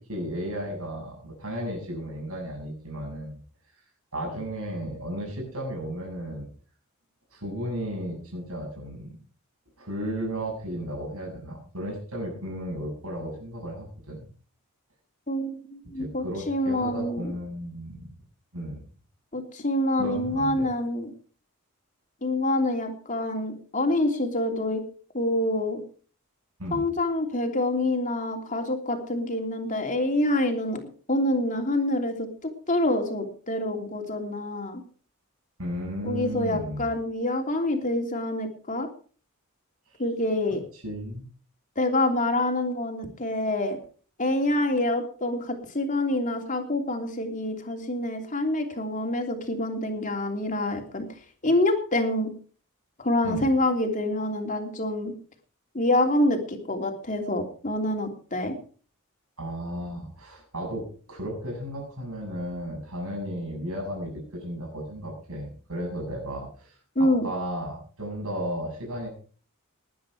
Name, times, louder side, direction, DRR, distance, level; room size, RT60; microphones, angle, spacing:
voice 1, 0.1-3.4 4.1-6.5 7.3-9.1 9.8-14.3 16.0-18.1 18.5-18.8 20.0-20.7 26.6-26.8 35.6-36.9 40.7-41.3 53.2-53.5 59.4-69.1, equal, 75° right, 0 dB, 7.4 m, -34 dB
voice 2, 15.3-17.3 19.3-21.1 22.2-24.8 25.1-25.8 26.7-30.8 31.1-32.3 32.7-34.8 36.0-38.9 40.0-40.6 41.8-43.8 44.2-51.1 51.4-52.3 53.0-55.1 55.7-58.6 66.9-67.3, left 1 dB, 35° left, 4 dB, 3.1 m, -26 dB
20.5 x 9.4 x 4.9 m, 0.42 s
head